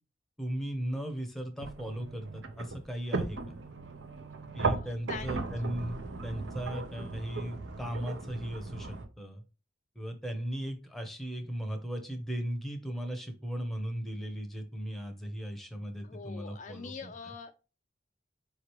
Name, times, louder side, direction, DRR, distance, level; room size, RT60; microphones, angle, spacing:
voice 1, 0.4-3.4 4.5-9.4 10.0-17.3, equal, ahead, 5 dB, 0.7 m, -37 dB
sound 1, 1.6-9.0, right 3 dB, 85° right, 0.7 m, -37 dB
voice 2, 4.7-5.4 16.0-17.5, left 5 dB, 40° left, 7 dB, 0.3 m, -43 dB
4.8 x 3.2 x 2.9 m, 0.32 s
head